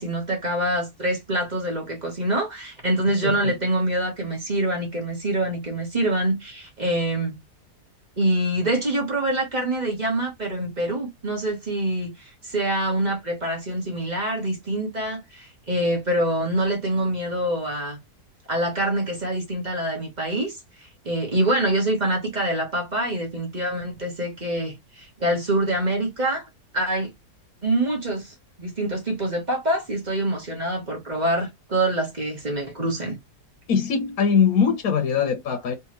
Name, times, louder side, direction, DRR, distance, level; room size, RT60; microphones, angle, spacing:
voice 1, 0.0-7.4 8.2-18.0 18.5-26.5 26.7-27.1 27.6-33.2, right 1 dB, 30° right, 1.2 m, -25 dB
voice 2, 3.2-3.5 33.7-35.7, left 6 dB, 65° left, 1.3 m, -22 dB
3.5 x 3.1 x 3.0 m
omnidirectional pair, 1.7 m